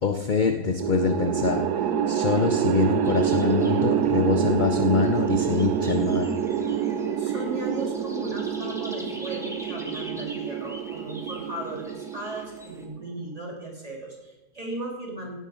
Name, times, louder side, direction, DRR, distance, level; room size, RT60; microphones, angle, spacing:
voice 1, 0.0-6.3, left 5 dB, 45° left, 6 dB, 0.7 m, -25 dB
sound 1, 0.8-13.1, right 8 dB, 80° right, 1.3 m, -27 dB
sound 2, 3.0-12.8, equal, ahead, 1.3 m, -45 dB
voice 2, 7.2-15.4, right 1 dB, 25° right, -2 dB, 3.0 m, -36 dB
16.5 x 11.0 x 3.8 m, 1.0 s
omnidirectional pair, 1.6 m